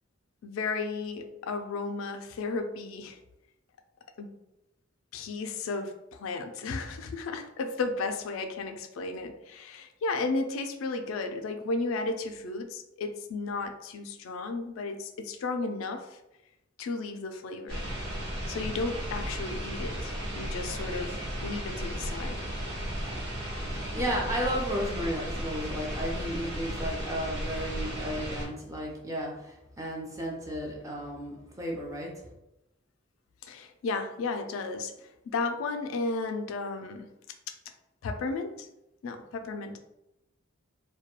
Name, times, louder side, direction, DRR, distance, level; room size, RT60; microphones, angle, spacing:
voice 1, 0.4-3.2 4.2-4.3 5.1-16.1 16.8-17.8 18.5-21.2 21.4-22.4 33.4-37.1 38.0-38.7 39.0-39.8, left 3 dB, 90° left, 7 dB, 0.3 m, -34 dB
sound 1, 17.7-28.5, equal, 60° right, 1.0 m, -35 dB
voice 2, 23.7-32.3, equal, 15° right, -1 dB, 0.5 m, -34 dB
2.2 x 2.1 x 2.9 m, 0.91 s
head